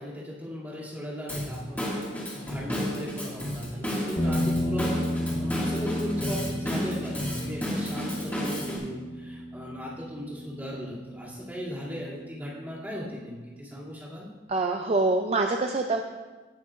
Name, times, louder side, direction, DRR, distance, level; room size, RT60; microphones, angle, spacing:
voice 1, 0.0-1.9 2.3-5.1 5.4-14.3, equal, 10° right, -9 dB, 2.6 m, -37 dB
Drum kit / Drum, 1.3-8.8, equal, 10° left, 2.0 m, -32 dB
sound 1, 4.2-12.5, left 1 dB, 30° left, 1.1 m, -33 dB
voice 2, 14.5-16.0, right 3 dB, 35° right, 4 dB, 0.4 m, -25 dB
17.5 x 6.5 x 2.5 m, 1.3 s
head